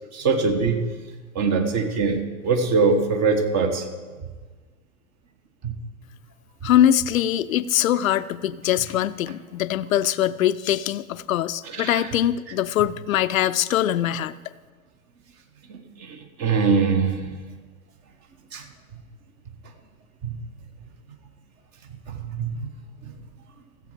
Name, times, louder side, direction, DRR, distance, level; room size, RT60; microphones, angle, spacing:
voice 1, 0.1-0.9 1.3-3.8 5.6-5.7 6.6-6.7 11.7-12.1 15.7-17.3 18.5-18.6 20.2-20.3 22.1-22.7 23.0-23.1, right 4 dB, 40° right, 5 dB, 1.6 m, -23 dB
voice 2, 6.6-14.4, left 11 dB, 70° left, 15 dB, 0.6 m, -22 dB
14.5 x 7.7 x 5.0 m, 1.4 s
figure-of-eight pair, 85°, 43 cm